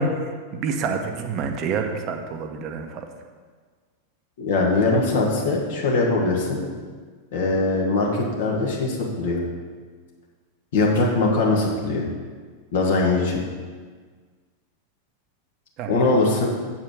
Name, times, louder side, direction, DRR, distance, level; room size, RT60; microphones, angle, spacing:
voice 1, 0.0-3.1 15.8-16.2, right 4 dB, 35° right, 5 dB, 0.8 m, -28 dB
voice 2, 4.4-6.6 7.3-9.4 10.7-12.0 12.7-13.4 15.9-16.5, left 3 dB, 55° left, -2 dB, 1.7 m, -21 dB
7.4 x 4.8 x 6.4 m, 1.5 s
figure-of-eight pair, 90°, 0 cm